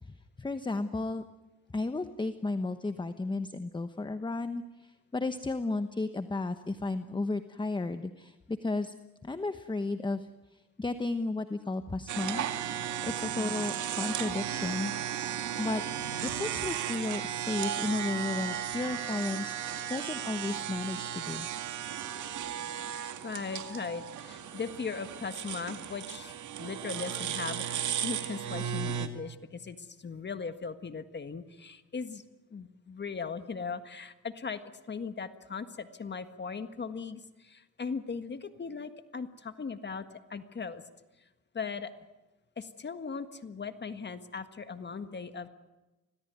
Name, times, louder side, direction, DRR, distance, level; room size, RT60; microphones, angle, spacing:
voice 1, 0.0-1.2 1.7-8.9 9.2-12.5 13.0-15.3 15.6-15.8 16.2-19.5 19.9-21.5, left 3 dB, 15° left, 10 dB, 1.1 m, -34 dB
sound 1, 12.1-29.1, right 9 dB, 75° right, 2.2 m, -35 dB
voice 2, 22.9-32.2 32.5-40.0 40.3-40.8 41.2-41.3 41.5-41.9 42.6-45.5, left 5 dB, 35° left, 9 dB, 1.7 m, -39 dB
25.5 x 18.0 x 9.5 m, 1.1 s
cardioid pair, 90°, 30 cm